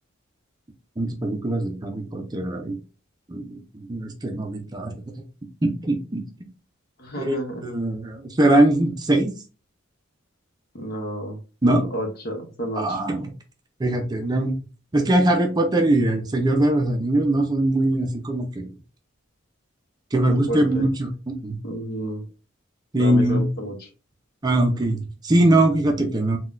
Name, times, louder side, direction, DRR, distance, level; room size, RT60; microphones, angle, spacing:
voice 1, 1.0-2.8 3.3-4.9 5.6-6.2 7.2-7.3 7.6-9.3 11.6-11.9 12.8-13.3 13.8-14.6 14.9-18.7 20.1-21.6 22.9-23.5 24.4-26.4, right 1 dB, 20° right, 4 dB, 0.4 m, -21 dB
voice 2, 7.0-7.8 10.7-11.4 11.7-13.0 20.3-20.9 21.6-22.3 22.9-23.9, right 1 dB, 55° left, 4 dB, 0.8 m, -31 dB
3.7 x 2.2 x 2.5 m, 0.33 s
head